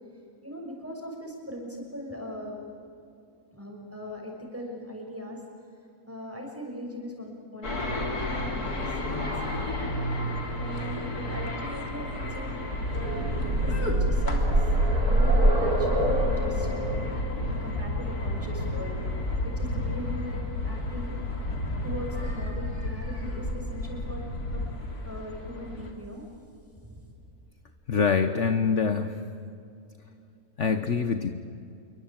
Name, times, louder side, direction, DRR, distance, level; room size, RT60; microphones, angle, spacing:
voice 1, 0.4-2.6 3.5-5.4 6.0-9.5 10.5-12.6 12.9-13.3 13.6-14.7 15.1-16.7 17.4-19.0 19.4-21.2 21.8-24.3 24.5-24.7 25.0-26.2 26.8-26.9, equal, 10° right, 0 dB, 6.3 m, -40 dB
sound 1, 7.6-25.9, left 1 dB, 90° left, 3.8 m, -32 dB
sound 2, 12.8-20.6 21.7-21.8 22.2-22.3, right 1 dB, 85° right, 3.7 m, -26 dB
voice 2, 27.9-29.2 30.6-31.3, left 5 dB, 55° left, 8 dB, 1.4 m, -24 dB
27.5 x 23.5 x 9.0 m, 2.5 s
omnidirectional pair, 1.6 m